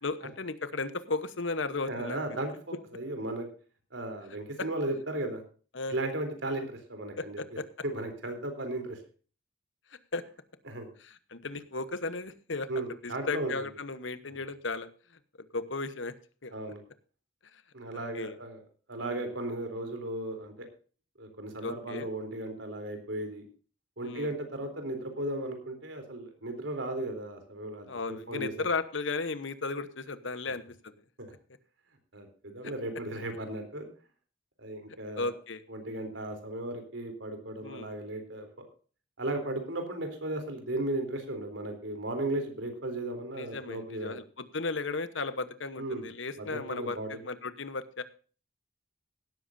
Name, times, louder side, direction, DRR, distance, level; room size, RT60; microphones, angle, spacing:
voice 1, 0.0-2.2 5.7-6.0 7.2-7.7 10.1-10.2 11.0-12.7 13.0-14.9 15.5-16.1 16.4-16.5 17.5-17.6 18.1-18.4 19.0-19.2 21.6-22.1 24.0-24.3 27.9-30.9 35.2-35.6 37.6-37.9 43.4-48.0, left 3 dB, 80° left, 12 dB, 1.1 m, -35 dB
voice 2, 1.9-3.5 3.9-5.4 5.9-7.4 7.8-9.0 10.7-10.9 12.7-13.7 14.3-14.4 16.5-16.8 17.7-18.6 18.9-20.7 21.2-23.4 24.0-28.7 31.2-31.3 32.1-33.9 34.6-35.3 35.7-38.5 39.2-44.2 45.8-46.1 46.4-47.2, right 1 dB, 85° right, 6 dB, 3.7 m, -36 dB
16.5 x 13.0 x 2.7 m, 0.39 s
head